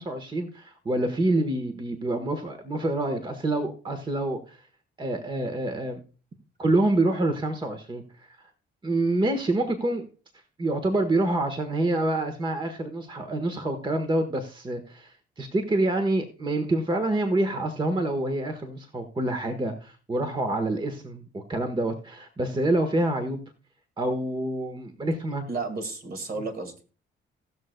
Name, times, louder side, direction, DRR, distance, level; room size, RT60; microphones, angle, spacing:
voice 1, 0.0-4.6 5.0-6.0 6.6-8.4 8.8-10.0 10.6-23.4 24.0-25.4, right 2 dB, 25° right, 7 dB, 1.3 m, -27 dB
voice 2, 25.5-26.9, right 3 dB, 50° right, 6 dB, 2.0 m, -33 dB
18.0 x 6.5 x 2.2 m, 0.36 s
cardioid pair, 90°, 20 cm